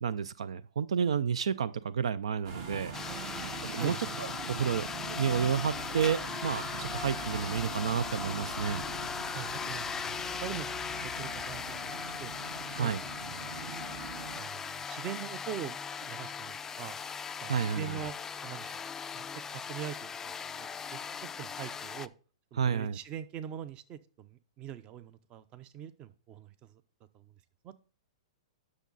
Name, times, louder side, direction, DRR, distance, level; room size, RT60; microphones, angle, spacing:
voice 1, 0.0-2.9 3.7-8.8 12.7-13.0 17.5-18.0 22.6-23.0, right 7 dB, 80° right, 18 dB, 0.4 m, -31 dB
sound 1, 2.4-14.4, right 5 dB, 50° right, 2.2 m, -43 dB
sound 2, 2.9-22.1, left 6 dB, 15° left, 0.3 m, -39 dB
voice 2, 3.1-4.0 9.2-10.7 11.0-12.3 12.8-12.9 13.2-13.7 14.4-17.0 17.4-18.1 18.4-18.8 19.1-21.0 21.4-22.1 22.5-26.8 27.1-27.3 27.6-27.8, right 10 dB, 30° right, 14 dB, 0.7 m, -43 dB
10.0 x 6.3 x 4.0 m, 0.39 s
hypercardioid pair, 125°, 3 cm